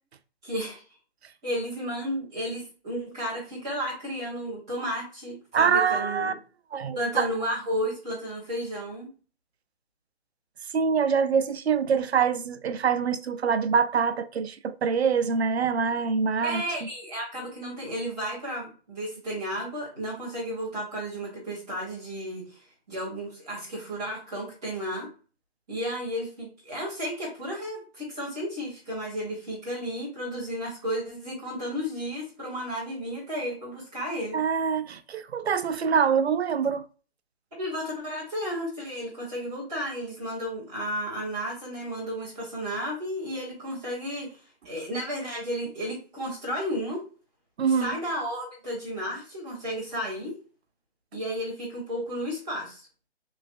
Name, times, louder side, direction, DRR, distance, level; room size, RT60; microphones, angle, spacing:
voice 1, 0.4-0.8 1.4-6.3 6.9-9.1 16.4-25.1 25.7-34.4 37.6-44.4 44.6-47.0 47.8-50.3 51.1-52.9, equal, 5° right, 0.4 m, -33 dB
voice 2, 5.5-6.3 6.7-7.3 10.7-16.6 34.3-36.8 47.6-47.9, right 6 dB, 80° right, 0.5 m, -25 dB
3.1 x 3.1 x 2.4 m
figure-of-eight pair, 145°, 32 cm